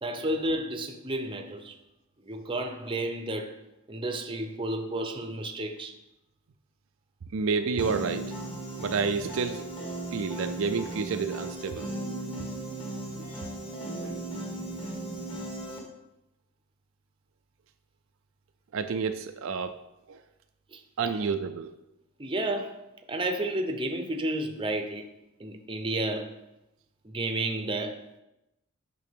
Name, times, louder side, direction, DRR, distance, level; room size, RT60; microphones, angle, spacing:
voice 1, 0.0-1.8 2.3-3.6 3.9-5.9 20.7-20.8 22.2-25.1 25.4-26.4 27.0-28.2, right 1 dB, 25° right, 0.7 m, -32 dB
voice 2, 7.3-8.3 8.8-11.9 14.0-14.2 14.8-14.9 18.7-19.8 20.1-20.2 21.0-21.7, right 5 dB, 70° right, 0.4 m, -30 dB
Piano, 7.8-15.8, right 1 dB, 25° left, 1.4 m, -36 dB
9.2 x 6.0 x 3.6 m
head